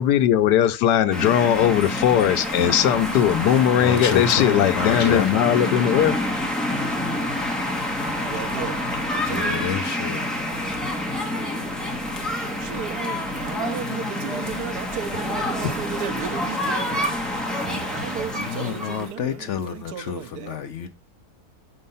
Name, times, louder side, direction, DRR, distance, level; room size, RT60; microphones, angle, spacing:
voice 1, 0.0-6.2 15.6-15.7, left 10 dB, 85° left, 1.3 m, -19 dB
sound 1, 1.1-19.1, left 1 dB, ahead, 1.3 m, -27 dB
sound 2, 1.2-20.1, right 3 dB, 55° right, 2.1 m, -45 dB
voice 2, 3.8-5.3 9.2-10.3 18.3-20.9, left 8 dB, 60° left, 0.8 m, -29 dB
voice 3, 8.2-8.8 9.1-9.7 12.6-17.1 17.5-20.5, right 8 dB, 80° right, 1.3 m, -34 dB
6.4 x 5.5 x 5.4 m
omnidirectional pair, 1.7 m